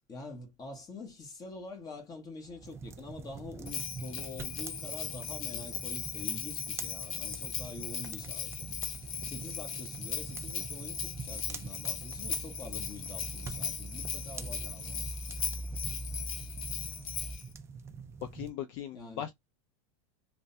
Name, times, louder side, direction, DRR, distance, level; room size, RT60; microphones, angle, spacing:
voice 1, 0.1-8.7 9.1-15.1 18.9-19.2, left 3 dB, 20° left, 1.1 m, -46 dB
sound 1, 2.4-17.3, right 1 dB, ahead, 0.8 m, -46 dB
sound 2, 2.6-18.5, right 5 dB, 15° right, 0.3 m, -46 dB
Bell, 3.7-17.5, left 8 dB, 80° left, 0.8 m, -38 dB
voice 2, 18.2-19.3, left 10 dB, 55° left, 0.5 m, -39 dB
3.2 x 2.1 x 2.7 m
supercardioid pair, 145°, 18 cm